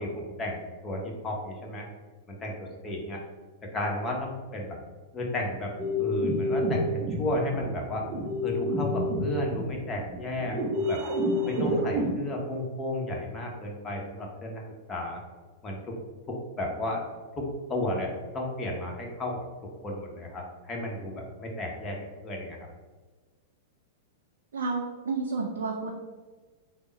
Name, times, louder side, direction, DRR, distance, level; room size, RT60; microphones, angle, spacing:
voice 1, 0.0-1.9 2.3-3.2 3.7-4.8 5.1-5.7 6.0-8.1 8.4-11.0 11.5-15.2 15.6-15.9 16.3-17.0 17.4-19.4 19.8-22.0 22.2-22.7, left 1 dB, 25° left, -1 dB, 0.9 m, -33 dB
sound 1, 5.8-12.1, equal, 30° right, 0.7 m, -29 dB
voice 2, 24.5-25.9, right 4 dB, 75° right, 1 dB, 0.4 m, -30 dB
3.5 x 2.1 x 3.9 m, 1.3 s
hypercardioid pair, 105°, 0 cm